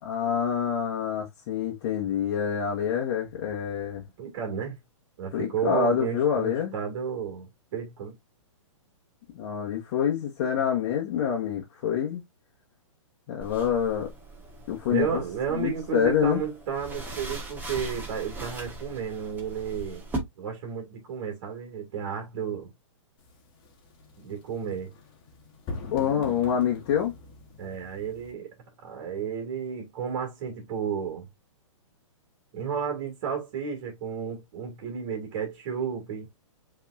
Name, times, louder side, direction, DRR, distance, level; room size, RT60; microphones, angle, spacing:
voice 1, 0.0-4.0 5.3-6.7 9.3-12.2 13.3-14.1 14.7-15.2 15.5-16.4 25.9-27.1, left 8 dB, 45° left, 1.3 m, -26 dB
voice 2, 4.2-4.8 5.2-8.2 14.9-20.0 20.4-22.7 24.2-24.9 27.6-28.5 28.8-31.3 32.5-36.3, right 7 dB, 45° right, 2.2 m, -32 dB
sound 1, 13.4-20.2, right 2 dB, 10° right, 1.6 m, -40 dB
sound 2, 23.2-28.3, left 3 dB, 25° left, 1.8 m, -43 dB
5.4 x 3.5 x 2.5 m
hypercardioid pair, 140°, 17 cm